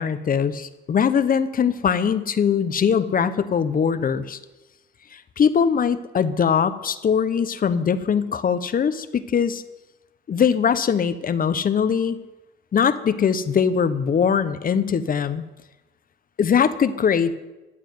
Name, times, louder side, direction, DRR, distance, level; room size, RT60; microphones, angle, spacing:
voice 1, 0.0-4.4 5.1-9.6 10.3-12.2 12.7-15.4 16.4-17.4, left 7 dB, 45° left, 13 dB, 0.9 m, -21 dB
13.5 x 7.2 x 9.5 m, 1.0 s
cardioid pair, 90°, 20 cm